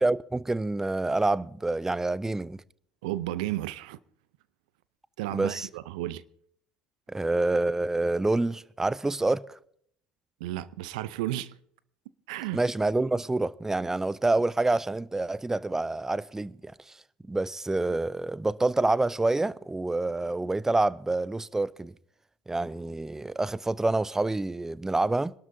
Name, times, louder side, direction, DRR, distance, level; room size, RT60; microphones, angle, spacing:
voice 1, 0.0-2.6 5.3-5.7 7.1-9.6 12.5-16.7 17.3-21.9 22.5-25.3, right 2 dB, 10° right, 0.5 m, -27 dB
voice 2, 3.0-4.0 5.2-6.2 10.4-11.5 12.3-12.6, right 15 dB, 75° right, 0.6 m, -33 dB
25.0 x 12.0 x 2.7 m
hypercardioid pair, 65°, 4 cm